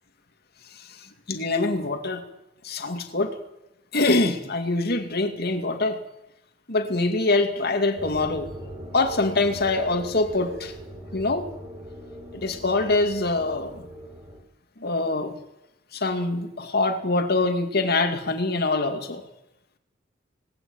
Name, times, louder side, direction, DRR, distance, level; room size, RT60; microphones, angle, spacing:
voice 1, 1.3-2.2 2.6-3.3 3.9-6.0 6.7-8.5 8.9-10.7 11.1-11.5 12.3-13.8 14.8-15.4 15.9-19.2, left 2 dB, 55° left, 6 dB, 2.4 m, -24 dB
sound 1, 8.0-14.4, equal, 25° right, 5.7 m, -40 dB
20.0 x 19.0 x 8.9 m, 0.88 s
head